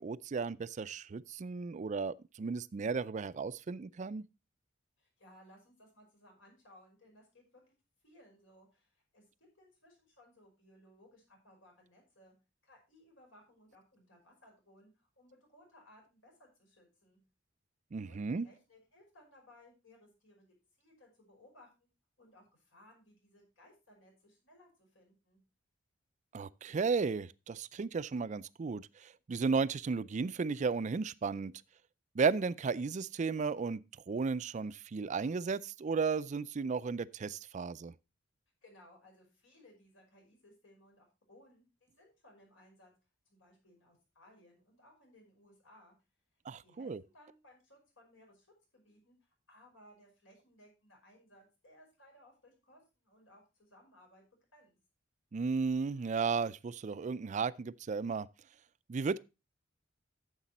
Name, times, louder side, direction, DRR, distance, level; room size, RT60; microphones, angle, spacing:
voice 1, 0.0-4.2 17.9-18.5 26.3-31.5 32.1-33.8 34.1-37.9 46.5-47.0 55.3-58.3 58.9-59.2, right 5 dB, 40° right, 0.4 m, -34 dB
voice 2, 5.0-7.6 8.0-9.2 9.6-12.3 12.6-17.2 18.0-20.5 20.8-21.9 22.2-25.4 38.6-42.9 43.3-45.9 46.6-48.5 48.7-54.2 54.5-54.8, left 1 dB, 80° left, 5.4 m, -62 dB
10.0 x 7.3 x 4.1 m
head